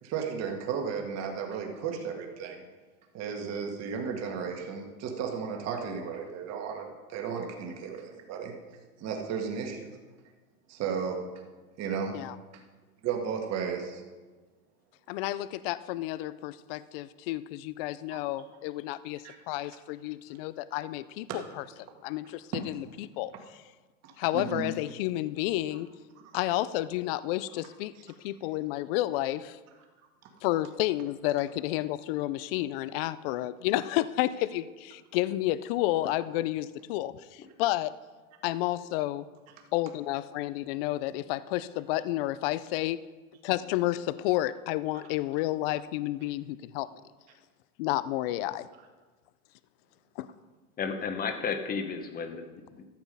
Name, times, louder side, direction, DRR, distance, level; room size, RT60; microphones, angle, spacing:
voice 1, 0.0-2.6 3.1-8.5 9.0-9.9 10.7-11.2 11.8-12.1 13.0-14.0 18.1-18.2 19.2-19.4 21.3-21.4 24.0-24.7, right 6 dB, 35° right, 2 dB, 1.8 m, -34 dB
voice 2, 15.1-21.6 22.0-23.3 24.2-25.9 26.3-27.9 28.2-29.6 30.4-38.0 38.4-39.3 39.7-43.0 43.4-46.9 47.8-48.7 50.2-50.3, left 15 dB, 45° left, 17 dB, 0.4 m, -31 dB
voice 3, 50.8-52.9, left 5 dB, 20° left, 7 dB, 1.0 m, -33 dB
13.5 x 7.1 x 5.3 m, 1.3 s
supercardioid pair, 130°, 44 cm